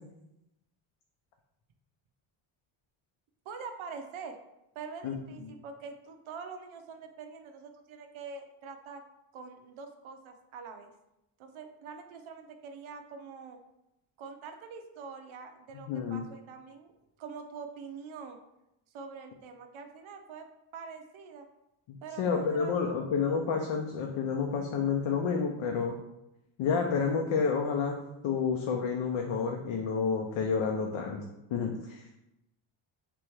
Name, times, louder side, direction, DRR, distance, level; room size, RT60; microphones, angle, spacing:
voice 1, 3.5-4.4 4.7-9.0 9.3-10.9 11.4-13.6 14.2-16.9 17.2-18.4 18.9-21.5 22.0-23.0, right 5 dB, 70° right, 6 dB, 0.7 m, -45 dB
voice 2, 15.9-16.2 21.9-26.0 26.6-28.0 28.2-31.2 31.5-32.0, left 5 dB, 75° left, 2 dB, 0.7 m, -29 dB
3.4 x 3.0 x 4.5 m, 0.88 s
cardioid pair, 140°, 49 cm